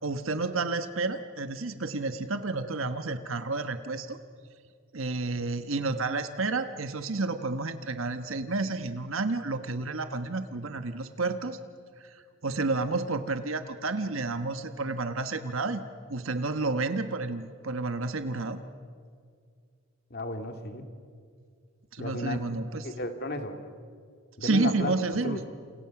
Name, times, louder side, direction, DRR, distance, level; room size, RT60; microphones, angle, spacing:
voice 1, 0.0-4.2 4.9-11.6 12.0-12.1 12.4-15.8 16.1-18.6 21.9-22.9 24.4-25.4, right 3 dB, 75° right, 9 dB, 1.3 m, -30 dB
voice 2, 20.1-20.9 22.0-22.4 22.8-23.5 24.4-24.9 25.2-25.4, left 1 dB, 50° left, 5 dB, 2.5 m, -33 dB
29.5 x 28.5 x 6.0 m, 2.1 s
head